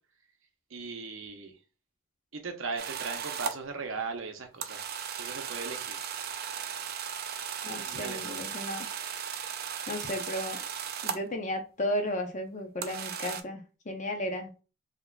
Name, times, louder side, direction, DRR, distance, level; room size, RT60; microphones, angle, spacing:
voice 1, 0.7-1.6 2.3-4.8 5.1-6.0 7.8-8.3, right 4 dB, 70° right, 0.7 m, -38 dB
sound 1, 2.8-3.6 4.6-11.3 12.8-13.4, right 7 dB, 45° right, 0.4 m, -36 dB
voice 2, 7.6-8.9 9.9-10.6 11.0-14.5, left 1 dB, 35° left, 0.6 m, -34 dB
3.9 x 2.9 x 2.2 m
head